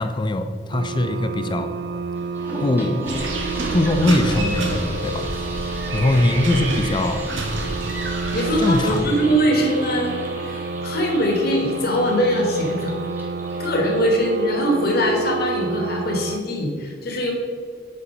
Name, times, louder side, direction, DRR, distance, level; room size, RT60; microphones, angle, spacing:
voice 1, 0.0-1.7 2.6-3.1 3.7-7.3 8.6-9.1, left 1 dB, 25° left, 9 dB, 0.4 m, -22 dB
sound 1, 0.7-16.4, right 4 dB, 60° right, 0.3 m, -30 dB
sound 2, 2.1-14.7, right 1 dB, 10° right, 1.2 m, -37 dB
sound 3, 3.1-9.0, right 2 dB, 85° right, 1.1 m, -29 dB
voice 2, 8.3-10.2 10.4-13.0 13.6-17.3, equal, 55° left, 0 dB, 1.2 m, -22 dB
7.1 x 4.2 x 5.2 m, 2.1 s
head